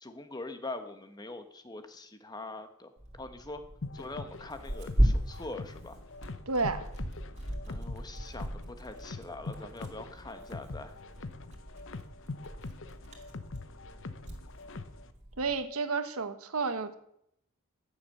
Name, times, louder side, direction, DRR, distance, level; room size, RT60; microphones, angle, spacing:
voice 1, 0.0-2.9 3.2-3.6 3.9-6.0 7.7-10.9, left 2 dB, 20° left, 8 dB, 1.0 m, -43 dB
Tearing, 3.0-15.6, equal, 30° right, 2.5 m, -36 dB
sound 1, 3.8-15.1, left 3 dB, 60° left, 0.8 m, -44 dB
voice 2, 6.5-6.8 15.4-16.9, right 4 dB, 80° right, 10 dB, 1.2 m, -31 dB
14.5 x 7.2 x 6.5 m, 0.72 s
head